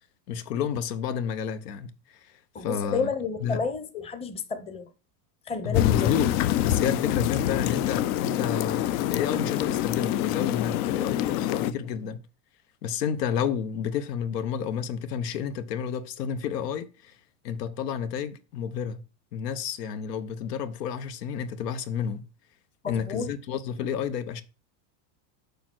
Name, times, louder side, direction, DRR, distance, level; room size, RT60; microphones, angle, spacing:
voice 1, 0.3-1.9 2.6-3.1 3.4-3.6 5.6-6.3 6.6-12.2 12.8-17.2 17.4-19.0 19.3-22.2 22.9-24.4, left 8 dB, 85° left, 1.1 m, -30 dB
voice 2, 2.5-4.8 5.5-6.1 22.8-23.3, left 5 dB, 15° left, 0.7 m, -31 dB
sound 1, 5.7-11.7, left 13 dB, 65° left, 0.7 m, -26 dB
7.0 x 5.1 x 6.1 m
supercardioid pair, 150°, 46 cm